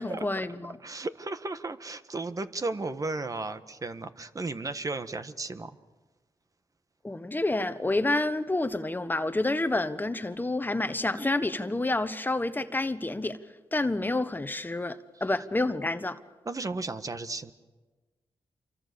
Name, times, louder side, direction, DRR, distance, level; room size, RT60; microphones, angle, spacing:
voice 1, 0.0-0.8 7.0-13.4 13.7-16.2, left 2 dB, 20° left, 1.3 m, -29 dB
voice 2, 0.8-5.8 16.4-17.5, right 3 dB, 40° right, 1.5 m, -34 dB
28.0 x 24.0 x 6.9 m
cardioid pair, 65°, 9 cm